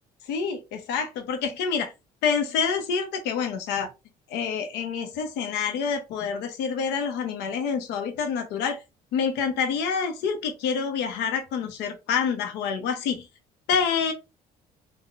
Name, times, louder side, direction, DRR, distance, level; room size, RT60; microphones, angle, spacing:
voice 1, 0.3-1.9 2.2-3.9 4.3-8.8 9.1-13.2 13.7-14.1, left 6 dB, 90° left, 0.6 m, -27 dB
3.7 x 2.1 x 2.3 m
cardioid pair, 110°, 17 cm